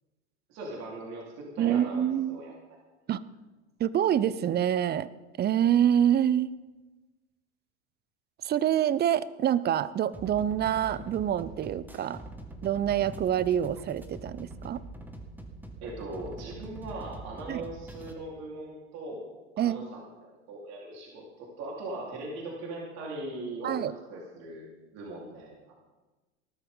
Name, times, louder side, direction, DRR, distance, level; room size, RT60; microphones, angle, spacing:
voice 1, 0.5-2.5 15.8-19.2 19.6-25.7, right 2 dB, 50° right, -3 dB, 4.3 m, -40 dB
voice 2, 1.6-2.4 3.1-3.2 3.8-5.1 5.4-6.5 8.4-12.2 12.6-14.8 17.5-17.6 19.6-19.9 23.6-23.9, right 10 dB, 30° right, 17 dB, 0.7 m, -26 dB
sound 1, 10.1-18.1, right 1 dB, 5° right, 2.1 m, -44 dB
19.0 x 13.0 x 3.9 m, 1.2 s
hypercardioid pair, 80°, 34 cm